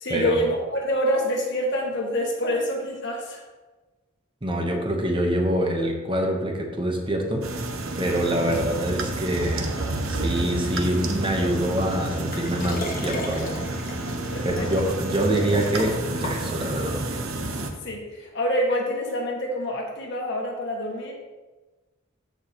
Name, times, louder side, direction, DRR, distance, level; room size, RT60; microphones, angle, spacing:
voice 1, 0.0-3.4 14.3-14.7 17.8-21.1, equal, 60° left, -1 dB, 1.7 m, -26 dB
voice 2, 4.4-7.6 8.0-9.7 10.1-13.6 14.4-17.2, right 1 dB, 25° right, 2 dB, 0.9 m, -25 dB
sound 1, 7.4-17.7, right 2 dB, 80° right, 0.9 m, -30 dB
Liquid, 12.3-16.9 17.5-17.6, left 1 dB, 45° left, 1.2 m, -37 dB
13.5 x 4.7 x 3.0 m, 1.2 s
head